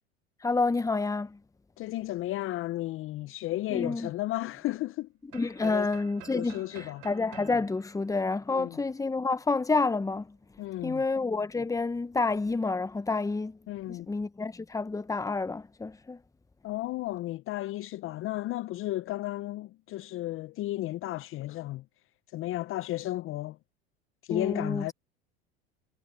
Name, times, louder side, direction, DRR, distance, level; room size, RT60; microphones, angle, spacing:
voice 1, 0.4-1.4 3.7-4.1 5.3-10.4 10.8-13.6 13.9-16.2 24.3-24.9, left 3 dB, 10° left, 1.1 m, -29 dB
voice 2, 1.8-5.1 5.6-5.9 6.3-7.0 8.5-8.8 10.6-11.0 13.7-14.1 16.6-21.8 22.3-23.6 24.2-24.9, left 16 dB, 45° left, 0.7 m, -33 dB
sound 1, 5.3-9.1, right 32 dB, 65° right, 5.9 m, -52 dB
hypercardioid pair, 85°, 31 cm